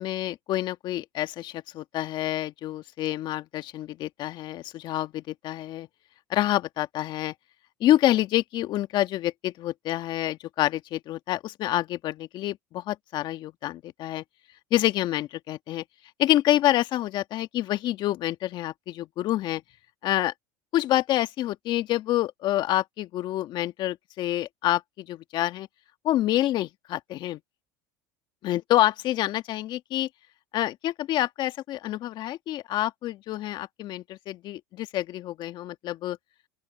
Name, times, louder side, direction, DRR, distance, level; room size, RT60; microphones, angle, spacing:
voice 1, 0.0-5.9 6.3-7.3 7.8-14.2 14.7-15.8 16.2-19.6 20.0-20.3 20.7-25.7 26.0-27.4 28.4-30.1 30.5-36.2, left 14 dB, 55° left, 1.7 m, -27 dB
open air
hypercardioid pair, 90°, 10 cm